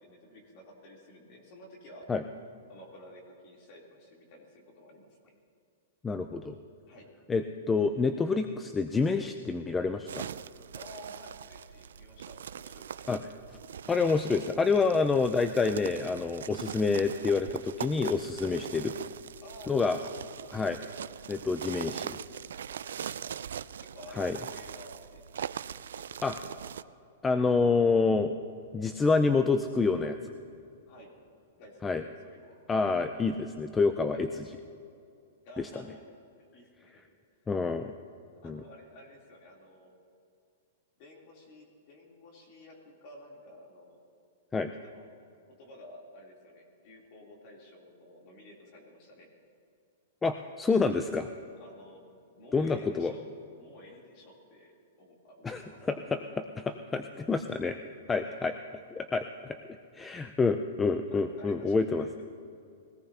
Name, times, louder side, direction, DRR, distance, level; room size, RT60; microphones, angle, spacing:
voice 1, 0.0-2.0 2.7-5.3 6.8-7.1 10.7-13.3 14.9-15.1 18.4-18.6 19.4-20.1 22.6-23.5 23.8-25.5 26.0-26.6 30.9-31.1 31.5-32.5 34.1-34.3 35.4-36.0 36.5-37.0 38.4-39.9 41.0-44.0 44.8-45.2 45.6-49.3 51.6-52.1 52.4-53.2 53.6-54.7 55.0-55.8 58.2-58.5 61.1-62.2, left 1 dB, 40° left, -1 dB, 3.3 m, -52 dB
voice 2, 6.0-6.6 7.3-10.3 13.1-13.2 13.9-18.9 19.7-20.0 20.5-20.8 21.3-22.2 24.2-24.4 26.2-26.3 27.2-28.3 28.7-30.2 31.8-32.0 32.7-34.3 35.6-35.7 37.5-37.9 38.4-38.6 44.5-44.7 50.2-51.3 52.5-53.1 55.4-55.6 55.9-57.8 58.1-58.5 59.0-59.6 59.9-62.1, left 4 dB, 10° left, 8 dB, 0.4 m, -27 dB
sound 1, 10.1-26.8, right 8 dB, 85° right, 0.4 m, -41 dB
22.0 x 18.0 x 2.9 m, 2.6 s
hypercardioid pair, 160°, 0 cm